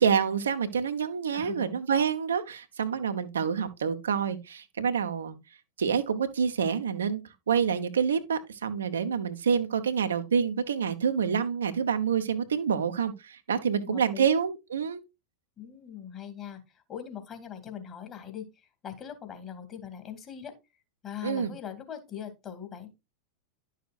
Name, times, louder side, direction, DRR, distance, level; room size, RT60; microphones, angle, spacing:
voice 1, 0.0-5.4 5.8-15.0 21.2-21.5, right 7 dB, 70° right, 0.9 m, -27 dB
voice 2, 1.3-1.7 13.7-14.3 15.6-20.5 21.0-22.9, left 9 dB, 30° left, 2.1 m, -41 dB
11.0 x 6.6 x 2.5 m
figure-of-eight pair, 90°, 0 cm